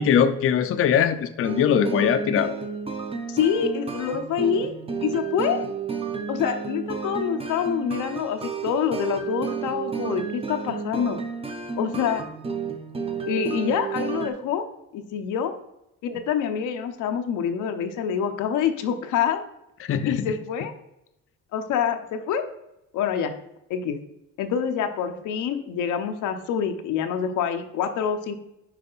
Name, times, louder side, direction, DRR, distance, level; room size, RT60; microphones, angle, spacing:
voice 1, 0.0-2.5 19.9-20.3, left 8 dB, 50° left, 9 dB, 0.5 m, -21 dB
sound 1, 1.4-14.3, right 6 dB, 20° right, 0.7 m, -32 dB
voice 2, 3.3-4.7 5.0-5.6 6.3-11.2 11.8-12.2 13.3-14.6 14.9-15.5 16.0-19.4 20.0-20.7 21.5-22.4 22.9-23.3 23.7-24.0 24.4-28.3, left 7 dB, 85° left, 7 dB, 0.7 m, -26 dB
5.8 x 4.7 x 3.9 m, 0.86 s
cardioid pair, 90°, 30 cm